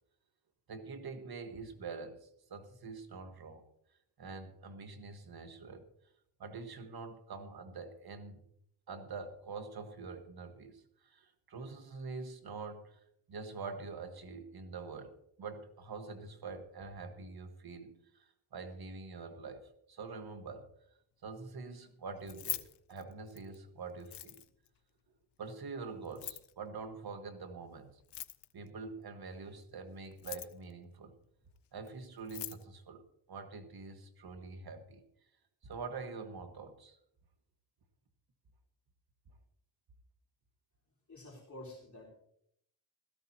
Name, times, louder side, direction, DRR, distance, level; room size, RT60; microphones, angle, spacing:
voice 1, 0.7-3.7 4.2-5.9 6.4-8.4 8.9-13.0 13.3-20.7 21.2-24.4 25.4-27.9 28.5-31.2 31.7-33.0 33.3-35.0 35.6-37.0, right 4 dB, 65° right, 7 dB, 1.5 m, -45 dB
Keys jangling, 22.2-23.6 24.0-24.7 26.0-26.5 28.0-28.7 30.0-30.7 31.9-32.0 32.2-32.6, left 12 dB, 85° left, 0.7 m, -42 dB
voice 2, 41.1-42.1, left 1 dB, 45° left, -4 dB, 4.2 m, -49 dB
16.5 x 14.0 x 2.8 m, 0.74 s
cardioid pair, 75°, 40 cm